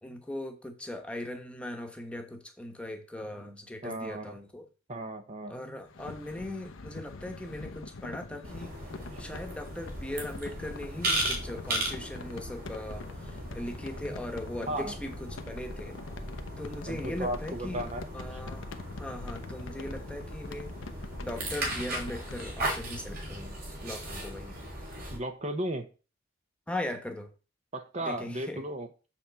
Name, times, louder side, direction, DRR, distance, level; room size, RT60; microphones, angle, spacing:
voice 1, 0.0-4.6 5.5-8.7 9.2-13.1 13.5-16.0 16.6-17.9 18.1-18.6 19.0-20.7 21.2-24.5 26.7-27.3 28.0-28.6, left 1 dB, 5° left, 4 dB, 1.1 m, -39 dB
voice 2, 3.8-4.4 4.9-5.6 9.1-9.3 14.7-15.0 16.9-18.4 25.1-25.9 27.7-28.9, right 1 dB, 35° right, 6 dB, 0.9 m, -35 dB
sound 1, 5.9-22.6, left 3 dB, 85° left, 0.8 m, -45 dB
sound 2, 8.4-25.2, right 1 dB, 50° right, 3.3 m, -37 dB
7.1 x 4.3 x 6.8 m, 0.34 s
head